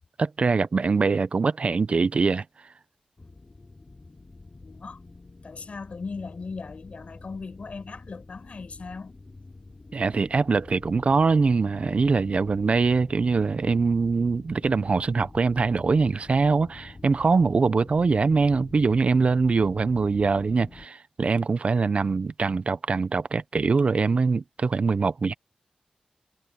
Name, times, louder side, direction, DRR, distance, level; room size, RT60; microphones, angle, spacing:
voice 1, 0.2-2.4 9.9-25.3, right 4 dB, 55° right, 0.6 m, -23 dB
sound 1, 3.2-20.9, left 3 dB, 35° left, 3.6 m, -47 dB
voice 2, 4.6-5.0 5.4-9.2, left 4 dB, 60° left, 4.7 m, -38 dB
wide cardioid pair, 85°, 3 cm